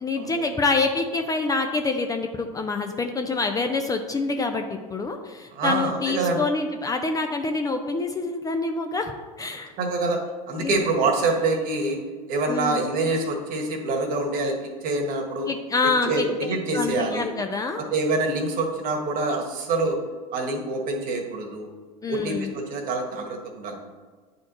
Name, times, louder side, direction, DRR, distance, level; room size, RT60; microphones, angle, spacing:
voice 1, 0.0-9.1 9.4-9.7 10.6-10.8 12.5-12.8 15.5-17.8 22.0-22.5, left 3 dB, 20° left, 5 dB, 0.5 m, -26 dB
voice 2, 5.5-6.5 9.8-12.0 12.3-15.5 16.0-17.3 17.8-20.0 20.3-21.7 22.1-23.7, right 2 dB, 50° right, 2 dB, 1.5 m, -26 dB
9.4 x 4.2 x 3.0 m, 1.4 s
hypercardioid pair, 90°, 19 cm